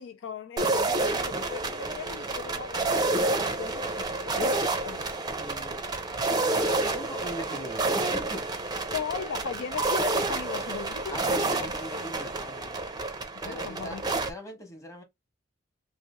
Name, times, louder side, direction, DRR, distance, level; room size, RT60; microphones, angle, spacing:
voice 1, 0.0-5.1 8.9-12.1 13.3-14.0, left 6 dB, 70° left, 0.4 m, -38 dB
sound 1, 0.6-14.3, right 2 dB, 20° right, 0.5 m, -29 dB
voice 2, 5.3-5.8 6.1-8.4 11.1-12.9 13.4-15.0, equal, 15° left, 1.1 m, -40 dB
3.2 x 2.5 x 3.6 m
head